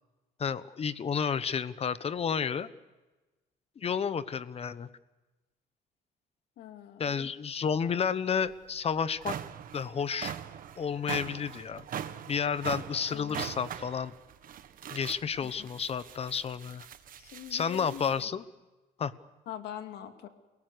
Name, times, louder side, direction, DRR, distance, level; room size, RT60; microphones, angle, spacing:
voice 1, 0.4-2.7 3.8-4.9 7.0-9.4 9.7-10.4 10.8-11.8 12.3-14.1 14.9-16.9 17.5-18.4 19.0-19.1, left 6 dB, 35° left, 15 dB, 1.1 m, -31 dB
voice 2, 6.6-7.3 13.1-13.4 15.4-15.7 17.2-18.3 19.5-20.3, left 10 dB, 75° left, 7 dB, 2.4 m, -44 dB
sound 1, 8.5-8.6 9.0-18.2, right 9 dB, 55° right, 1.3 m, -41 dB
29.0 x 18.5 x 6.8 m, 1.1 s
cardioid pair, 110°, 17 cm